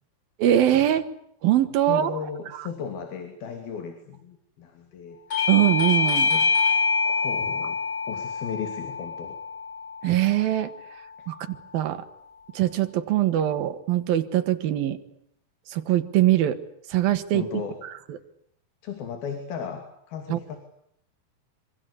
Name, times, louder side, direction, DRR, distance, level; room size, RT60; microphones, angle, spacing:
voice 1, 0.4-1.1 1.4-2.2 2.6-2.7 5.5-6.3 10.0-10.7 11.3-12.0 12.6-15.0 15.7-16.6 16.9-17.5 18.1-18.2 20.3-20.4, right 12 dB, 80° right, 9 dB, 3.5 m, -22 dB
voice 2, 1.9-5.2 6.3-6.5 7.1-7.8 8.1-9.4 11.2-11.3 17.3-17.8 18.8-20.6, left 7 dB, 85° left, 6 dB, 4.7 m, -35 dB
Bell / Doorbell, 5.3-10.5, left 4 dB, 35° left, 4.4 m, -25 dB
26.5 x 26.0 x 8.4 m, 0.71 s
omnidirectional pair, 4.2 m